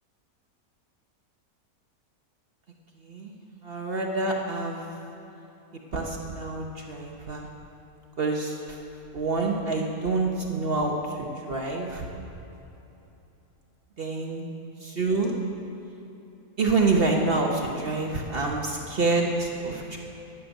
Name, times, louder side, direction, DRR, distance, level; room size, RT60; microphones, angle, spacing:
voice 1, 3.6-4.8 5.9-7.5 8.2-8.5 9.1-12.0 14.0-14.5 14.8-15.3 16.6-20.0, right 3 dB, 45° right, 0 dB, 0.9 m, -27 dB
9.8 x 6.9 x 9.0 m, 3.0 s
omnidirectional pair, 1.6 m